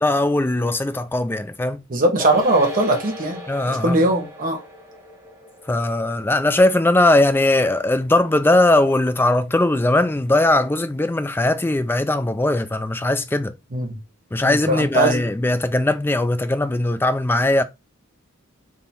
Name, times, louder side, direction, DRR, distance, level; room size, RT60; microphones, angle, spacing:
voice 1, 0.0-1.8 3.5-4.0 5.7-13.5 14.3-17.6, left 2 dB, 10° left, 0.3 m, -19 dB
voice 2, 1.9-4.6 13.7-14.0 14.4-15.2, right 1 dB, 40° right, 1.1 m, -20 dB
sound 1, 2.2-8.9 9.1-9.2, left 1 dB, 15° right, 0.9 m, -37 dB
3.7 x 2.9 x 4.1 m
head